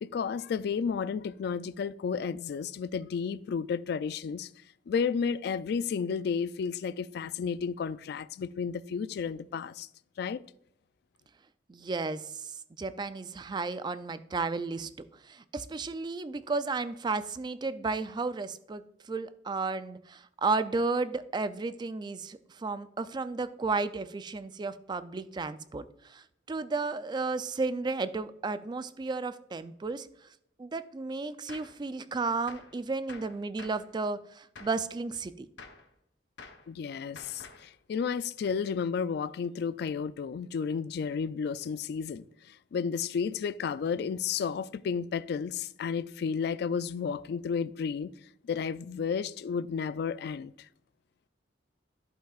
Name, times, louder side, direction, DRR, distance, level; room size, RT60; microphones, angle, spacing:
voice 1, 0.0-4.5 4.9-9.9 10.2-10.4 36.7-48.1 48.4-50.5, left 6 dB, 65° left, 0.3 m, -32 dB
voice 2, 11.7-30.1 30.6-35.5, right 3 dB, 25° right, 0.3 m, -33 dB
Gunshot gunfire, 31.5-31.8 32.5-32.8 33.1-33.9 34.6-34.9 35.6-35.9 36.4-36.7 37.2-37.7, left 4 dB, 90° left, 0.9 m, -49 dB
11.0 x 5.6 x 2.4 m
head